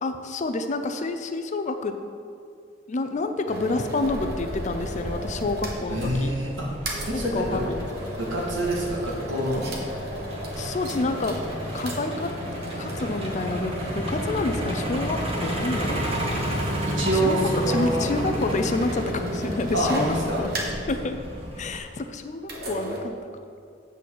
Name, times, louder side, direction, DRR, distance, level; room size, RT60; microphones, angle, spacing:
voice 1, 0.0-2.0 2.9-6.3 7.1-7.9 10.6-11.4 11.7-12.3 12.8-16.0 17.1-17.4 17.7-20.5 20.9-21.1 21.6-23.1, left 2 dB, 40° left, 7 dB, 0.5 m, -28 dB
sound 1, 3.5-6.1 6.4-6.5 6.9-21.0 22.4-23.0, equal, 55° right, 1.3 m, -35 dB
Truck, 4.0-21.8, equal, 30° right, 1.3 m, -32 dB
voice 2, 5.9-6.7 7.1-7.6 8.2-9.6 16.9-18.0 19.7-20.4, right 1 dB, 80° right, -4 dB, 1.9 m, -26 dB
8.1 x 4.2 x 6.5 m, 2.3 s
head